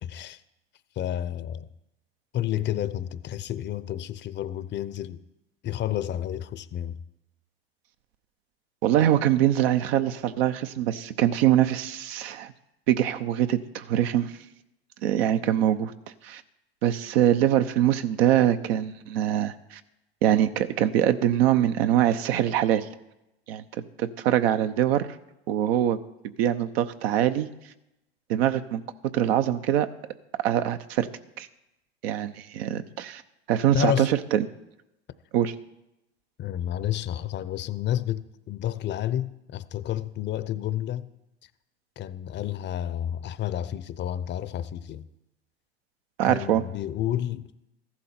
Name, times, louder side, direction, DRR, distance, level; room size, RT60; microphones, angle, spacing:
voice 1, 0.0-0.4 1.0-1.7 2.3-5.2 5.6-7.0 33.7-34.1 36.4-41.1 42.0-45.1 46.2-47.5, left 11 dB, 35° left, 0.7 m, -30 dB
voice 2, 8.8-12.5 12.9-14.3 15.0-15.9 16.2-16.4 16.8-19.8 20.2-22.9 23.5-23.6 24.0-25.1 25.5-26.0 26.4-27.5 28.3-28.8 29.1-29.9 30.4-31.1 31.4-31.5 32.0-33.2 33.5-34.5 35.3-35.5 46.2-46.6, right 11 dB, 70° right, 0.9 m, -23 dB
14.5 x 11.5 x 4.3 m
hypercardioid pair, 90°, 32 cm